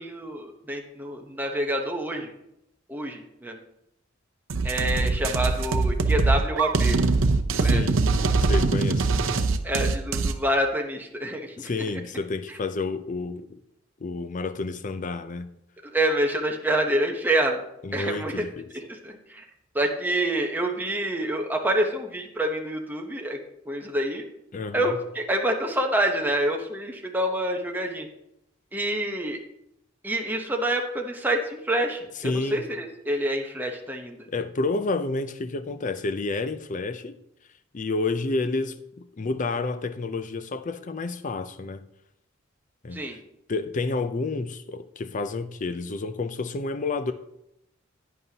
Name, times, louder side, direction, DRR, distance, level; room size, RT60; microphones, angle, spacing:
voice 1, 0.0-2.3 2.9-3.6 4.6-7.0 7.6-7.8 9.6-11.7 15.9-17.6 17.9-18.4 18.9-19.4 19.7-23.4 23.7-24.2 24.7-28.1 28.7-29.4 30.0-34.3 42.9-43.2, right 1 dB, 10° right, 0.9 m, -27 dB
sound 1, 4.5-10.3, right 3 dB, 75° right, 0.7 m, -22 dB
voice 2, 7.6-8.1 8.4-9.1 11.6-13.6 14.0-15.6 17.8-18.7 24.5-25.0 32.2-32.6 34.3-37.2 37.7-41.8 42.8-43.2 43.5-47.1, left 3 dB, 40° left, 0.5 m, -30 dB
11.0 x 9.5 x 2.9 m
head